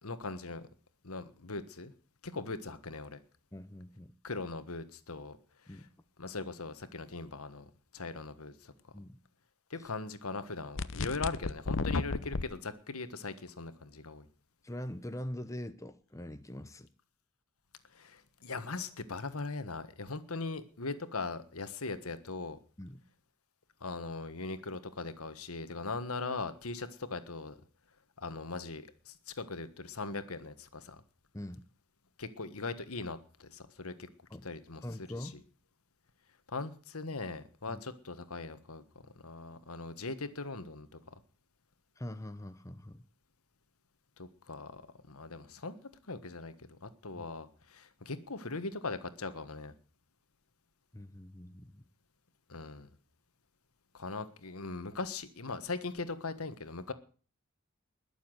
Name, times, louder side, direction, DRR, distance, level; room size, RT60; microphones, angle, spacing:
voice 1, 0.0-0.6 1.0-1.9 2.2-3.2 4.2-5.4 5.7-5.8 6.2-7.7 7.9-8.7 9.7-14.2 17.9-22.6 23.8-27.6 28.2-31.0 32.2-34.1 34.4-34.8 35.2-35.3 36.5-38.8 39.2-40.9 44.2-44.8 45.1-45.8 46.1-49.7 52.5-52.9 53.9-56.9, left 3 dB, 75° left, 1.5 m, -40 dB
voice 2, 3.5-4.1 5.7-5.9 8.9-9.2 9.8-9.9 14.6-16.9 22.8-23.0 31.3-31.6 34.3-34.4 34.8-35.4 37.7-37.8 42.0-43.0 47.2-47.3 50.9-51.8, left 1 dB, 15° left, 0.8 m, -43 dB
sound 1, 10.8-12.4, left 3 dB, 60° left, 0.8 m, -33 dB
21.0 x 7.2 x 8.0 m
head